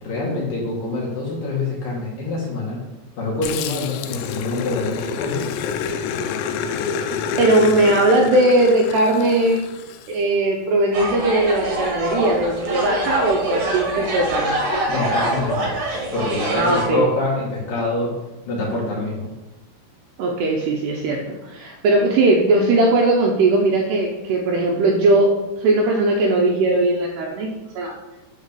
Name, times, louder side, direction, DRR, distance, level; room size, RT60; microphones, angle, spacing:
voice 1, 0.0-2.8 3.2-5.5 14.9-15.7 16.1-18.1 18.5-19.3, left 2 dB, 55° left, -5 dB, 2.8 m, -25 dB
Growling, 3.4-10.1, left 6 dB, 85° left, 2.5 m, -28 dB
voice 2, 7.4-9.6 10.1-14.6 16.5-17.0 20.2-27.9, right 2 dB, 75° right, 0 dB, 2.5 m, -19 dB
sound 1, 10.9-16.8, right 1 dB, 55° right, 1.8 m, -25 dB
10.0 x 4.0 x 6.8 m, 1.1 s
omnidirectional pair, 5.7 m